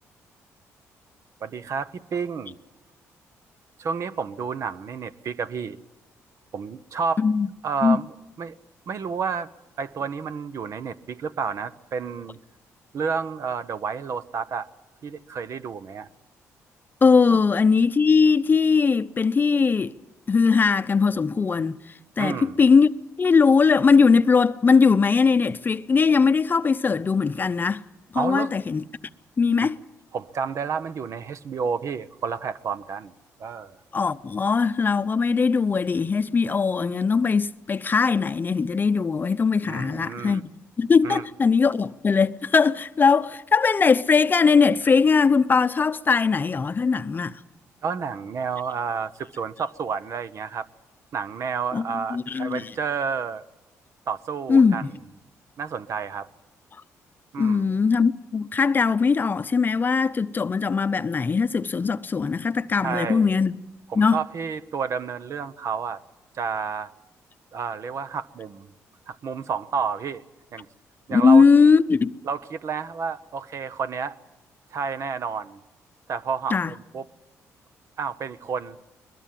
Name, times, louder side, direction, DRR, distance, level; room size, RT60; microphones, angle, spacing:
voice 1, 1.4-2.5 3.8-5.8 6.5-7.2 7.6-8.5 8.9-9.5 9.8-12.4 12.9-14.7 15.0-16.1 17.3-17.4 22.2-22.6 28.1-28.6 29.6-29.7 30.1-33.1 33.4-33.8 39.6-40.4 41.0-41.2 47.8-50.7 51.1-53.5 54.1-54.8 55.6-56.3 57.3-57.7 62.8-63.3 63.9-66.0 66.4-66.9 67.5-68.7 69.1-70.2 70.5-70.7 71.1-71.4 72.2-74.2 74.7-75.6 76.1-77.0 78.0-78.8, right 6 dB, 60° right, 1.0 m, -30 dB
voice 2, 7.2-7.5 7.8-8.0 17.0-19.9 20.3-21.8 22.2-22.9 23.2-27.8 28.1-28.8 29.4-29.8 33.9-47.4 51.7-51.8 52.1-52.7 54.5-54.9 57.4-63.5 64.0-64.2 71.1-72.2 76.5-76.7, left 5 dB, 35° left, 0.7 m, -20 dB
21.5 x 21.5 x 7.6 m
cardioid pair, 85°, 6 cm